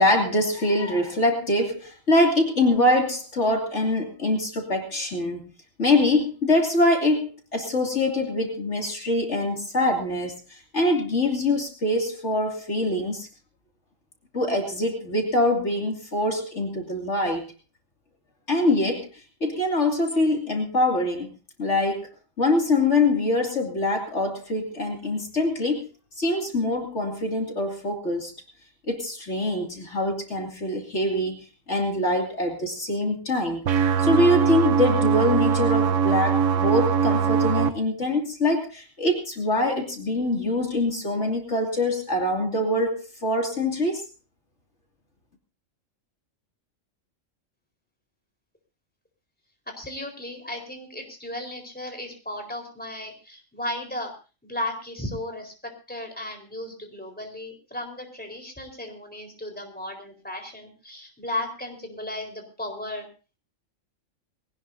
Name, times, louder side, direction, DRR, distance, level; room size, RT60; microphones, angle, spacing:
voice 1, 0.0-5.4 5.8-13.3 14.3-17.5 18.5-21.3 21.6-22.1 22.4-25.9 26.2-28.3 28.9-33.6 34.0-44.0, left 1 dB, 60° left, 2 dB, 3.1 m, -24 dB
sound 1, 33.7-37.7, right 7 dB, 70° right, 1.3 m, -21 dB
voice 2, 49.8-54.1 54.4-63.1, left 1 dB, 5° left, 2 dB, 4.3 m, -35 dB
20.5 x 18.5 x 2.7 m, 0.33 s
omnidirectional pair, 1.4 m